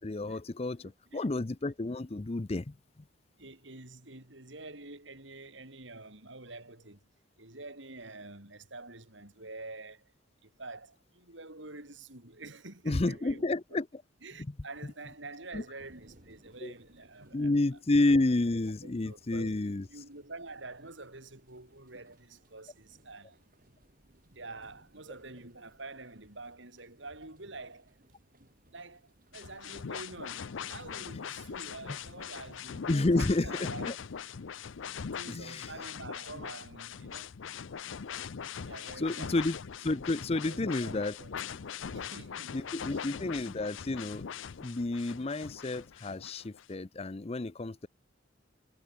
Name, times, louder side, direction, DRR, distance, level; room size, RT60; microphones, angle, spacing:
voice 1, 0.0-2.7 12.9-13.9 15.5-15.6 16.6-16.7 17.3-19.9 32.9-34.0 35.3-35.7 39.0-41.2 42.5-44.2 44.6-47.9, left 2 dB, 30° left, 0.6 m, -30 dB
voice 2, 0.8-1.2 3.4-7.0 7.4-10.1 10.4-13.8 14.2-17.5 18.1-18.2 18.8-19.6 19.9-23.4 24.3-28.0 28.7-34.0 35.1-37.3 38.6-39.4 40.3-41.3 41.9-43.1, right 2 dB, 70° right, 4.9 m, -47 dB
sound 1, 15.8-34.7, right 1 dB, 45° right, 3.7 m, -64 dB
sound 2, 29.3-46.7, left 7 dB, 75° left, 0.6 m, -41 dB
head